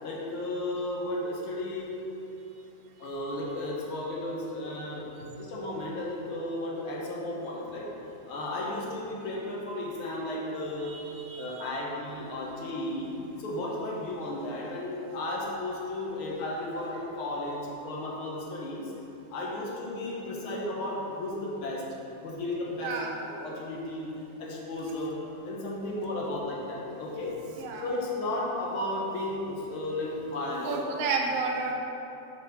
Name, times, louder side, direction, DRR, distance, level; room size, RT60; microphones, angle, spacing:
voice 1, 0.0-2.0 3.0-5.1 5.4-7.9 8.3-11.0 11.4-13.1 13.4-18.9 19.3-21.8 22.2-24.1 24.4-27.3 27.8-30.8, left 1 dB, 60° left, -3 dB, 1.5 m, -34 dB
voice 2, 10.8-11.6 22.8-23.1 27.6-27.8 30.6-31.7, right 4 dB, 70° right, 0 dB, 1.6 m, -31 dB
6.3 x 5.5 x 5.1 m, 2.9 s
omnidirectional pair, 3.5 m